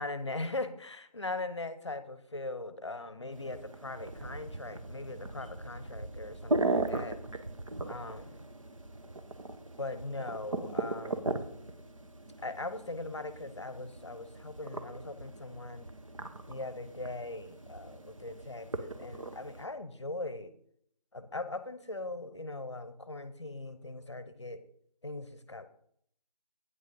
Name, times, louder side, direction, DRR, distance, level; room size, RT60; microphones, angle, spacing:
voice 1, 0.0-7.2 7.9-8.5 9.8-11.4 12.4-15.9 16.5-20.5 21.1-24.6 25.0-25.7, left 2 dB, 45° left, 12 dB, 0.8 m, -40 dB
sound 1, 3.3-19.7, right 2 dB, 50° right, 1.0 m, -38 dB
9.0 x 6.5 x 5.2 m, 0.67 s
figure-of-eight pair, 165°, 21 cm